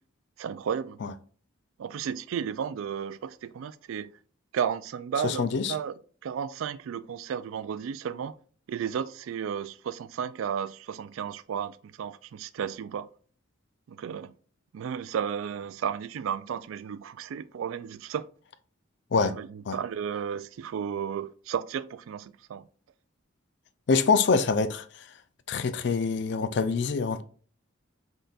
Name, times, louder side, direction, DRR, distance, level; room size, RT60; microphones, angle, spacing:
voice 1, 0.4-1.0 1.8-4.1 4.5-8.4 8.7-13.1 13.9-14.3 14.7-18.3 19.2-22.6, right 7 dB, 75° right, 0.3 m, -33 dB
voice 2, 5.2-5.7 19.1-19.3 19.7-19.8 23.9-24.8 25.5-27.2, left 4 dB, 55° left, 0.4 m, -25 dB
5.6 x 3.9 x 2.4 m
head